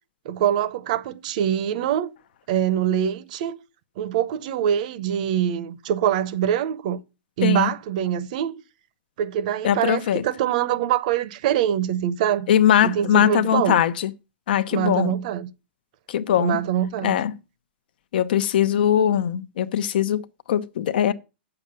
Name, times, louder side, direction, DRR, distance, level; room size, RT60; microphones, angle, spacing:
voice 1, 0.2-2.1 2.5-3.6 4.0-7.0 7.4-8.6 9.2-12.5 12.8-13.8 14.7-15.5 16.4-17.2, right 10 dB, 45° right, 0.8 m, -24 dB
voice 2, 9.6-10.2 12.5-14.1 14.5-15.1 16.1-16.6 17.0-17.3 18.1-21.1, left 10 dB, 60° left, 0.8 m, -21 dB
8.4 x 6.9 x 6.8 m
supercardioid pair, 165°, 6 cm